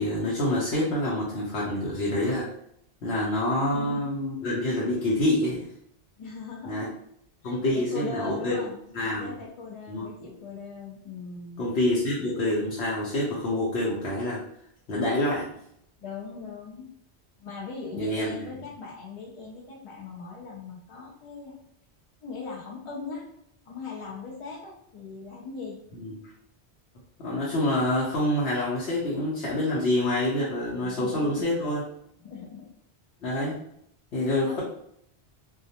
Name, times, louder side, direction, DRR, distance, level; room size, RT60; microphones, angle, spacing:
voice 1, 0.0-2.5 3.0-5.7 6.7-6.9 7.4-8.6 8.9-9.4 9.9-10.1 11.6-14.4 14.9-15.5 17.9-18.5 25.9-26.2 27.2-31.8 33.2-33.6 34.1-34.6, left 1 dB, 75° left, -6 dB, 0.9 m, -27 dB
voice 2, 3.7-4.1 6.2-6.9 7.4-8.8 9.2-11.6 16.0-16.9 17.4-21.6 22.2-23.3 23.7-25.8 30.8-31.5 32.2-32.7 34.4-34.6, left 4 dB, 55° left, -3 dB, 0.3 m, -39 dB
2.3 x 2.2 x 2.7 m, 0.73 s
omnidirectional pair, 1.1 m